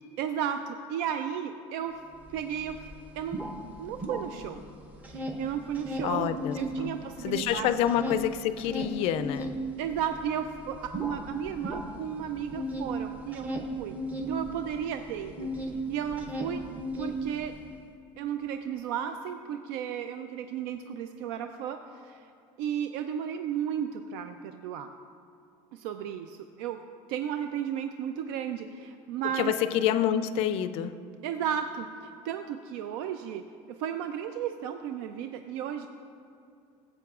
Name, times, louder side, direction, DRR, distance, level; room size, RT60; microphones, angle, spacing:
voice 1, 0.2-2.0 2.3-2.9 3.2-3.4 3.8-4.6 5.1-7.7 9.8-15.5 15.9-16.6 17.0-17.5 18.2-22.3 22.6-24.9 25.7-26.8 27.1-29.5 31.2-35.9, right 9 dB, 85° right, 7 dB, 0.4 m, -34 dB
sound 1, 2.3-2.4 2.6-4.6 4.9-6.8 7.1-15.8 16.1-17.6, equal, 10° right, 0.5 m, -36 dB
voice 2, 6.0-7.0 7.2-9.5 29.4-31.0, left 10 dB, 50° left, 12 dB, 0.4 m, -27 dB
14.5 x 7.7 x 2.4 m, 2.6 s
cardioid pair, 165°, 13 cm